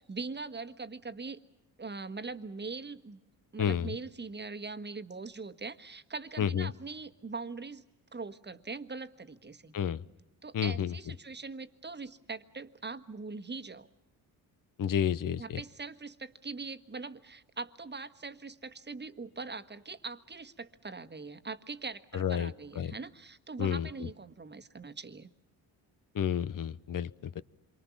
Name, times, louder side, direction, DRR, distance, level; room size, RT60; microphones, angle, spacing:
voice 1, 0.0-1.4 1.8-3.2 3.5-7.8 8.1-9.7 10.4-13.9 15.4-25.3, right 4 dB, 25° right, 9 dB, 1.5 m, -42 dB
voice 2, 3.6-3.9 6.4-6.7 9.7-10.0 10.5-10.9 14.8-15.6 22.1-22.9 23.6-23.9 26.1-27.4, left 9 dB, 50° left, 17 dB, 0.9 m, -30 dB
27.5 x 23.5 x 7.2 m, 1.0 s
cardioid pair, 70°, 41 cm